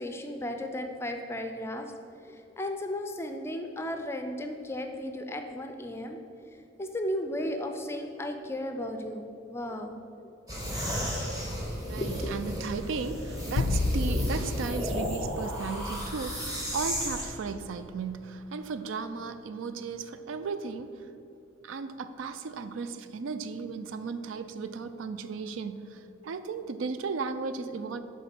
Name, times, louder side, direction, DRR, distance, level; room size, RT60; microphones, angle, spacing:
voice 1, 0.0-1.9 2.2-6.2 6.8-10.0 11.2-11.3 12.0-12.3, left 1 dB, 10° left, 5 dB, 0.4 m, -35 dB
sound 1, 10.5-17.3, equal, 20° right, 1.4 m, -33 dB
voice 2, 11.9-21.1 21.6-28.0, right 4 dB, 75° right, 11 dB, 0.4 m, -35 dB
sound 2, 13.6-16.2, left 3 dB, 75° left, 0.4 m, -31 dB
7.9 x 3.7 x 5.9 m, 2.8 s
head